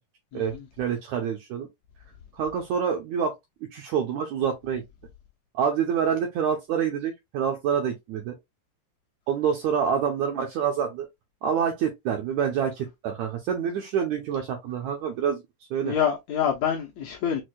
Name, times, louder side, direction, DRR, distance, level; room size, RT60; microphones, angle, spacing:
voice 1, 0.3-1.7 2.3-3.3 3.7-4.8 5.5-8.3 9.3-11.1 11.4-15.4 15.7-15.9, right 7 dB, 80° right, 1.7 m, -27 dB
voice 2, 15.8-17.4, left 8 dB, 70° left, 1.8 m, -26 dB
6.2 x 2.4 x 2.2 m
omnidirectional pair, 3.9 m